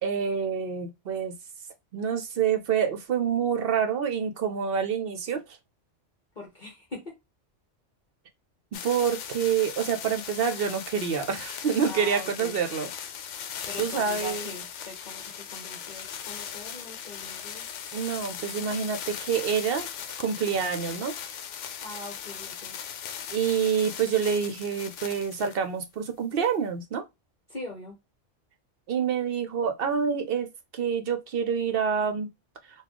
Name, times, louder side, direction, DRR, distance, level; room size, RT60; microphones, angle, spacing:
voice 1, 0.0-1.4 1.9-5.4 8.7-12.9 13.8-14.5 17.9-19.9 20.2-21.1 23.3-27.0 28.9-30.5 30.7-32.3, right 7 dB, 60° right, 0.7 m, -27 dB
voice 2, 6.4-7.1 11.8-12.6 13.7-17.7 21.8-22.8 27.5-28.0, left 2 dB, 40° left, 1.1 m, -41 dB
sound 1, 8.7-25.6 26.4-26.5, left 8 dB, 75° left, 0.9 m, -38 dB
4.0 x 2.3 x 3.0 m
omnidirectional pair, 1.3 m